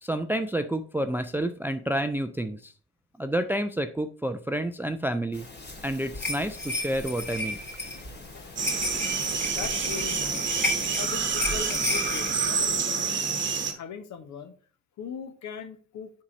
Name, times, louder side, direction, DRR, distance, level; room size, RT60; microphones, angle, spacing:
voice 1, 0.0-2.7 3.2-5.5 5.8-7.6, right 1 dB, 5° right, 10 dB, 0.5 m, -29 dB
sound 1, 5.3-12.8, left 2 dB, 30° left, 2.0 m, -33 dB
voice 2, 7.8-10.6 11.0-13.2 13.7-14.5 15.0-16.1, left 7 dB, 50° left, 10 dB, 1.0 m, -40 dB
sound 2, 8.6-13.7, right 5 dB, 30° right, 1.2 m, -28 dB
7.4 x 4.7 x 4.0 m, 0.41 s
hypercardioid pair, 50°, 37 cm